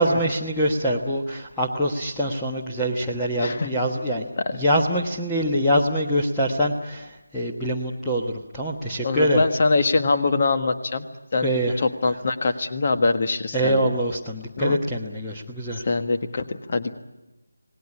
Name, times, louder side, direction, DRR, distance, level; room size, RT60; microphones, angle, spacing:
voice 1, 0.0-9.4 11.4-11.8 13.5-15.9, equal, 5° left, -5 dB, 1.3 m, -24 dB
voice 2, 9.0-11.0 11.3-11.5 11.8-13.8 14.6-14.8 15.8-16.9, left 3 dB, 40° left, 8 dB, 1.6 m, -23 dB
28.0 x 19.0 x 9.8 m, 1.0 s
figure-of-eight pair, 160°, 0 cm